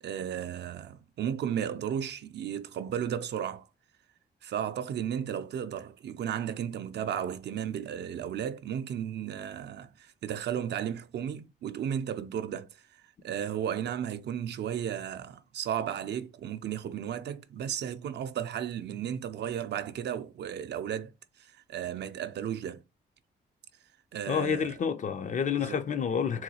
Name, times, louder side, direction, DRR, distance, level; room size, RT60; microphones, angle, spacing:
voice 1, 0.0-3.7 4.4-12.8 13.2-21.1 21.4-22.8 24.1-24.7 25.6-25.8, right 9 dB, 65° right, 0.4 m, -34 dB
voice 2, 24.3-26.4, left 7 dB, 40° left, 0.4 m, -29 dB
3.8 x 2.2 x 2.8 m
cardioid pair, 100°, 19 cm